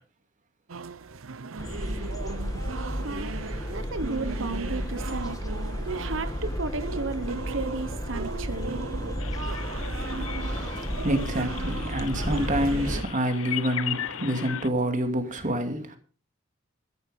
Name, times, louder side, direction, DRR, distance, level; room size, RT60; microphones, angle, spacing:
sound 1, 0.7-13.0, right 4 dB, 90° right, 0.7 m, -38 dB
sound 2, 1.6-13.0, equal, 20° left, 1.4 m, -33 dB
voice 1, 2.8-5.4 5.9-8.8, right 3 dB, 70° right, 1.1 m, -34 dB
sound 3, 9.2-14.7, left 10 dB, 85° left, 0.7 m, -37 dB
voice 2, 10.4-16.0, equal, 40° right, 2.6 m, -28 dB
14.0 x 11.0 x 5.2 m
head